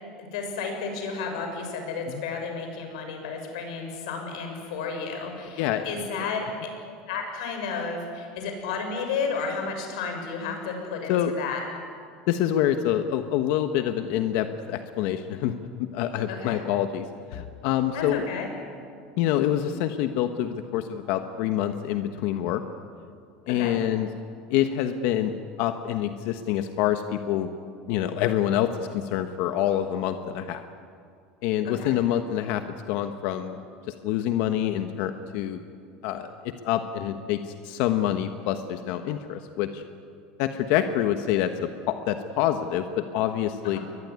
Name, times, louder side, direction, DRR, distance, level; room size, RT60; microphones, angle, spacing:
voice 1, 0.2-6.7 7.1-11.6 16.3-16.6 17.9-18.5 23.5-23.7 31.6-31.9 43.6-43.8, left 5 dB, 90° left, 4 dB, 6.6 m, -32 dB
voice 2, 12.3-17.1 17.3-18.2 19.2-22.6 23.5-24.1 24.5-27.5 27.9-30.6 31.4-33.6 34.0-35.6 36.0-39.8 40.4-43.8, left 11 dB, 65° left, 8 dB, 1.2 m, -26 dB
23.0 x 20.5 x 9.7 m, 2.3 s
cardioid pair, 150°, 4 cm